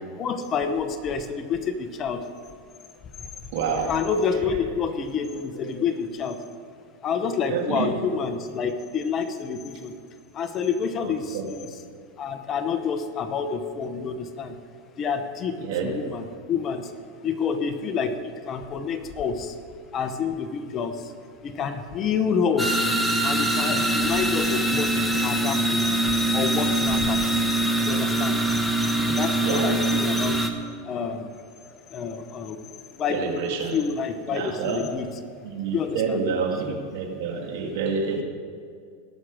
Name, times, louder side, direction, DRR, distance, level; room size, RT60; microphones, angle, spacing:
voice 1, 0.2-2.2 3.2-3.5 3.9-6.5 7.0-9.9 10.3-11.7 12.2-14.6 15.0-16.9 17.2-19.6 19.9-21.1 21.4-22.8 23.2-27.5 27.8-28.5 29.1-33.3 33.7-35.1 35.6-36.2, left 6 dB, 30° left, 8 dB, 0.9 m, -28 dB
voice 2, 3.5-3.9 7.5-7.9 11.0-11.5 15.6-15.9 29.4-29.7 33.1-33.8 34.3-34.8 35.4-38.2, right 5 dB, 65° right, 1 dB, 2.4 m, -28 dB
sound 1, 22.6-30.5, right 1 dB, ahead, 1.0 m, -23 dB
19.0 x 6.4 x 4.9 m, 2.3 s
supercardioid pair, 135°, 0 cm